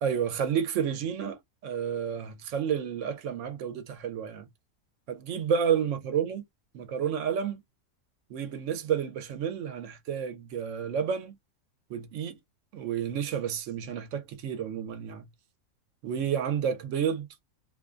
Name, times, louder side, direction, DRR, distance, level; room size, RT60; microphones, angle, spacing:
voice 1, 0.0-4.5 5.1-6.4 6.7-7.6 8.3-11.4 11.9-12.4 12.7-15.3 16.0-17.3, right 8 dB, 70° right, 0.8 m, -30 dB
2.5 x 2.1 x 2.4 m
omnidirectional pair, 1.5 m